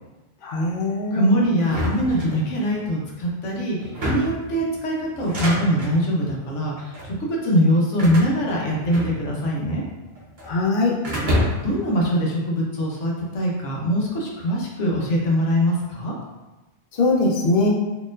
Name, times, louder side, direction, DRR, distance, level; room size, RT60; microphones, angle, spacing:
voice 1, 0.4-1.3 10.4-10.9 17.0-17.7, left 2 dB, 55° left, -2 dB, 0.7 m, -21 dB
voice 2, 1.1-9.8 11.6-16.1, equal, 70° left, -3 dB, 1.2 m, -22 dB
sound 1, 1.6-2.8 3.8-4.5 5.1-6.0 6.8-7.2 8.0-9.5 9.8-10.5 11.0-11.8, equal, 45° right, 0.9 m, -27 dB
4.2 x 3.0 x 2.4 m, 1.1 s
omnidirectional pair, 1.3 m